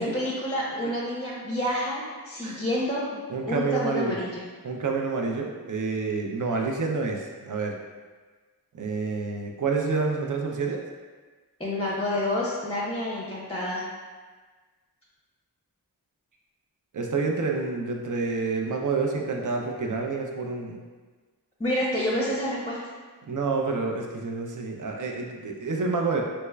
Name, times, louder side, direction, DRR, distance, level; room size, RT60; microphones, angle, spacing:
voice 1, 0.0-3.0 3.4-4.4 11.6-13.8 21.6-22.8, left 1 dB, 15° left, -6 dB, 0.6 m, -28 dB
voice 2, 3.3-4.2 4.6-7.8 8.7-10.8 16.9-20.8 23.3-26.2, right 4 dB, 50° right, 1 dB, 0.5 m, -28 dB
3.4 x 3.1 x 2.2 m, 1.4 s
wide cardioid pair, 45°, 39 cm